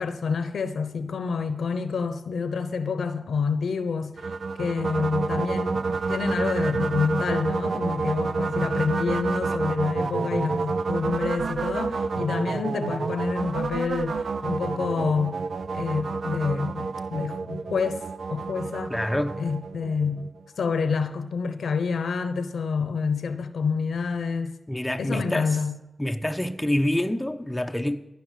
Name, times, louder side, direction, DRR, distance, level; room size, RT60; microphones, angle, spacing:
voice 1, 0.0-4.3 4.6-15.4 15.7-18.9 19.4-20.3 20.6-24.6 25.0-25.7, left 5 dB, 85° left, 0.9 m, -28 dB
sound 1, 4.2-20.4, right 4 dB, 75° right, 0.5 m, -29 dB
voice 2, 18.9-19.4 24.7-25.5 26.0-28.0, left 1 dB, 10° left, 0.9 m, -26 dB
14.5 x 5.9 x 9.2 m
cardioid pair, 55°, 0 cm